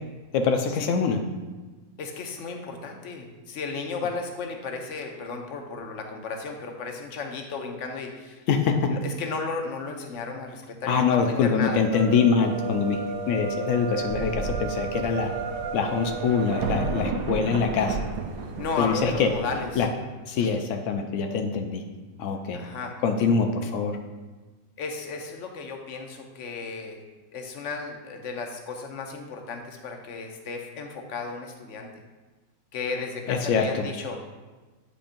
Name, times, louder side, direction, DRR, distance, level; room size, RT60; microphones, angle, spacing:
voice 1, 0.3-1.2 8.5-8.9 10.9-15.3 15.7-18.0 18.8-19.3 19.8-19.9 20.3-21.8 22.2-22.6 23.0-24.0 33.3-33.8, left 5 dB, 85° left, 5 dB, 0.6 m, -24 dB
voice 2, 2.0-8.4 8.9-11.8 18.6-19.8 20.4-20.5 22.5-23.0 24.8-27.0 27.3-31.9 32.7-34.2, left 4 dB, 60° left, 3 dB, 0.9 m, -34 dB
sound 1, 11.8-17.1, right 4 dB, 85° right, 1.3 m, -33 dB
Thunder, 13.7-13.8 14.0-19.8, right 4 dB, 70° right, 1.1 m, -33 dB
8.4 x 5.1 x 2.6 m, 1.3 s
omnidirectional pair, 1.9 m